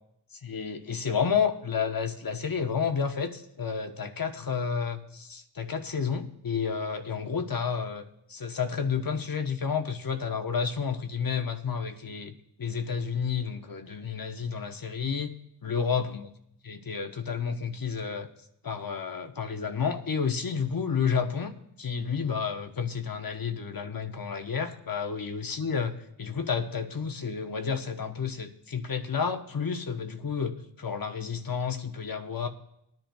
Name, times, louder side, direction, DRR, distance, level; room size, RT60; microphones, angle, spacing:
voice 1, 0.4-15.3 15.6-16.3 16.6-18.3 18.6-21.5 21.8-32.5, left 6 dB, 45° left, 6 dB, 1.0 m, -31 dB
19.5 x 10.5 x 2.3 m, 0.78 s
cardioid pair, 55°, 49 cm